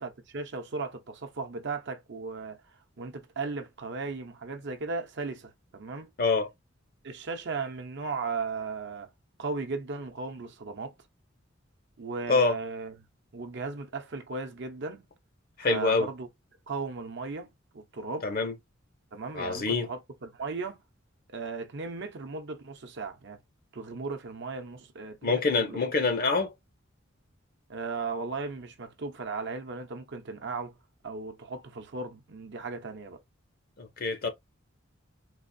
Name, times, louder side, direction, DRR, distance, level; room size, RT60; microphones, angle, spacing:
voice 1, 0.0-2.6 3.0-6.1 7.0-9.1 9.4-10.9 12.0-12.9 13.3-15.1 15.7-16.3 16.7-18.3 19.1-20.8 21.3-23.4 23.7-25.9 26.3-26.4 27.7-30.7 31.0-33.2, right 4 dB, 60° right, 0.7 m, -36 dB
voice 2, 6.2-6.5 12.3-12.6 15.6-16.1 18.2-18.5 19.3-19.9 25.2-26.5 33.8-34.3, left 3 dB, 45° left, 0.6 m, -26 dB
4.0 x 2.4 x 2.6 m
head